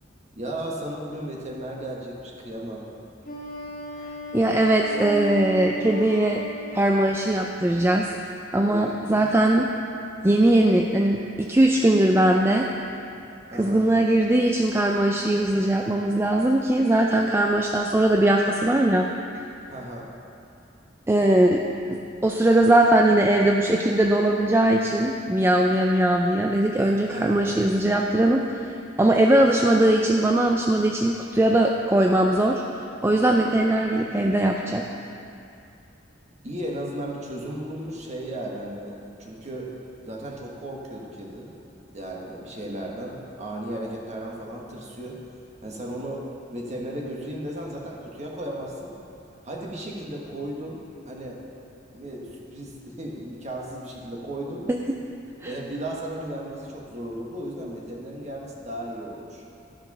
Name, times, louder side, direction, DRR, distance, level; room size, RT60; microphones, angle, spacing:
voice 1, 0.3-2.9 8.6-9.3 13.5-13.9 19.7-20.1 27.1-27.5 33.3-33.5 36.4-38.9 39.2-39.7 40.0-41.6 41.9-45.2 45.6-46.2 46.5-48.9 49.4-51.4 51.9-54.6 55.4-59.4, right 1 dB, 40° right, -2 dB, 1.4 m, -35 dB
Wind instrument woodwind instrument, 3.2-7.6, right 1 dB, 50° left, 1.6 m, -35 dB
voice 2, 4.3-6.4 6.7-8.1 8.5-9.7 10.2-12.7 13.5-19.1 21.1-21.6 21.9-28.6 29.0-32.6 33.0-34.9 54.7-54.8 55.4-55.5, right 1 dB, 15° right, 1 dB, 0.4 m, -20 dB
13.0 x 5.7 x 5.4 m, 2.6 s
head